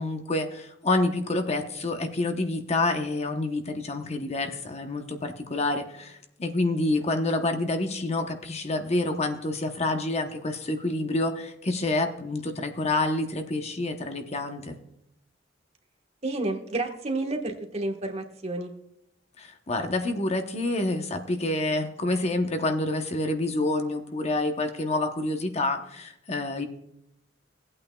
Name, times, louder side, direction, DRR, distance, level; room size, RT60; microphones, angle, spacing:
voice 1, 0.0-14.8 19.4-26.7, left 2 dB, 35° left, 6 dB, 0.9 m, -28 dB
voice 2, 16.2-18.7, right 2 dB, 35° right, 4 dB, 1.3 m, -30 dB
17.5 x 8.7 x 2.3 m, 0.78 s
head